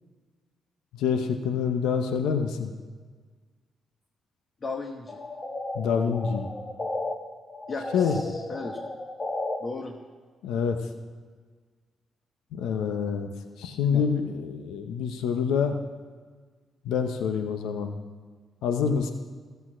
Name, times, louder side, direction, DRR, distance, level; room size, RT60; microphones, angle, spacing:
voice 1, 0.9-2.7 5.7-6.5 7.9-8.2 10.4-10.8 12.5-13.3 13.6-15.8 16.8-17.9 18.6-19.1, left 6 dB, 85° left, 6 dB, 0.8 m, -26 dB
voice 2, 4.6-5.2 7.7-8.8 9.6-10.0 13.8-14.1 18.8-19.1, left 3 dB, 45° left, 2 dB, 1.2 m, -36 dB
sound 1, 5.1-7.1 7.5-9.6, left 2 dB, 30° left, 1.4 m, -34 dB
14.0 x 8.0 x 6.2 m, 1.5 s
supercardioid pair, 65°, 0 cm